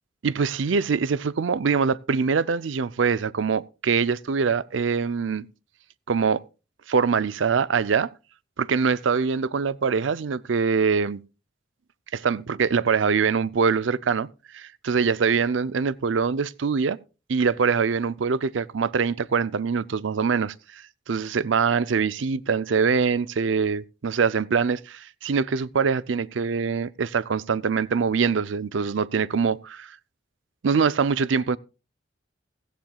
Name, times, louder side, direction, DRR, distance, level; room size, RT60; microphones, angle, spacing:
voice 1, 0.2-5.5 6.1-6.4 6.9-8.1 8.6-11.2 12.1-14.3 14.5-17.0 17.3-20.8 21.1-30.0 30.6-31.6, right 5 dB, 80° right, 0.5 m, -23 dB
16.5 x 15.0 x 2.3 m
head